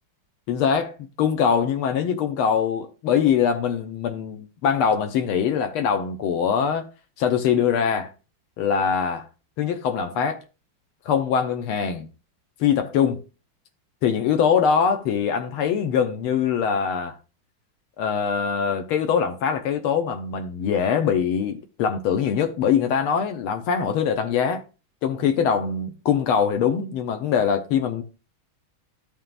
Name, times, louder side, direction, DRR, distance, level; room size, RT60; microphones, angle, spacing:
voice 1, 0.5-6.9 7.2-8.1 8.6-9.3 9.6-10.4 11.0-12.1 12.6-13.2 14.0-17.1 18.0-24.6 25.0-28.0, left 7 dB, 85° left, 1.7 m, -23 dB
13.5 x 5.5 x 2.5 m
omnidirectional pair, 2.3 m